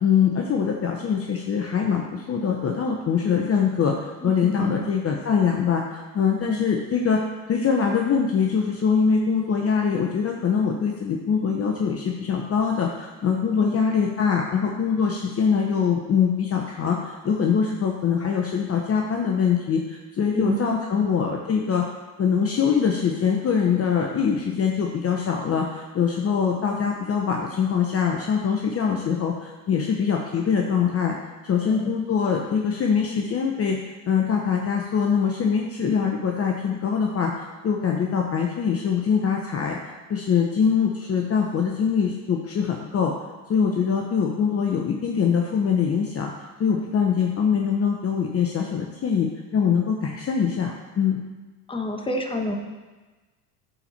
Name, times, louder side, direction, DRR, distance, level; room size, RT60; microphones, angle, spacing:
voice 1, 0.0-3.9 4.2-7.2 7.5-21.8 22.2-31.1 31.4-33.8 34.1-39.8 40.1-43.1 43.5-46.3 46.6-51.2, left 6 dB, 30° left, 1 dB, 0.9 m, -23 dB
voice 2, 4.2-4.8 6.4-6.6 13.6-13.9 20.3-20.5 20.9-21.1 31.7-31.9 51.7-52.6, left 1 dB, 10° left, 3 dB, 1.2 m, -28 dB
12.0 x 4.4 x 4.3 m, 1.2 s
hypercardioid pair, 85°, 46 cm